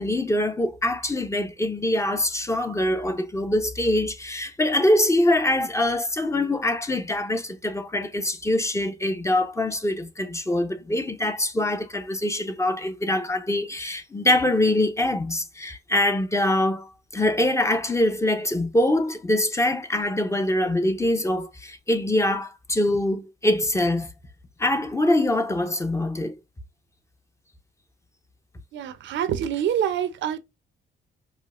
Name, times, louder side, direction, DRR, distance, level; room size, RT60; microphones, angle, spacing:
voice 1, 0.0-24.1 24.6-26.4, left 1 dB, 15° left, 0.5 m, -24 dB
voice 2, 28.7-30.4, right 9 dB, 70° right, 0.5 m, -26 dB
4.9 x 2.0 x 2.3 m
cardioid pair, 90°, 20 cm